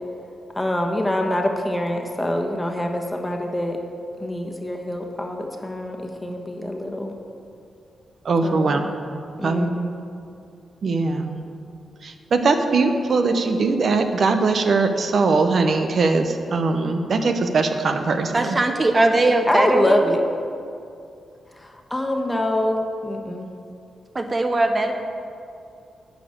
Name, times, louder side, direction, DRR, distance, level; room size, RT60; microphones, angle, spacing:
voice 1, 0.5-3.8 4.2-7.1 8.4-8.9 9.4-10.0 19.5-20.2 21.6-23.5, left 1 dB, 15° left, 2 dB, 1.3 m, -25 dB
voice 2, 8.3-8.8 9.4-9.8 10.8-11.4 12.3-18.6, right 3 dB, 60° right, 6 dB, 0.8 m, -21 dB
voice 3, 18.3-20.0 24.1-24.9, right 2 dB, 30° right, 5 dB, 0.9 m, -20 dB
11.5 x 5.1 x 8.6 m, 2.5 s
cardioid pair, 85°, 0 cm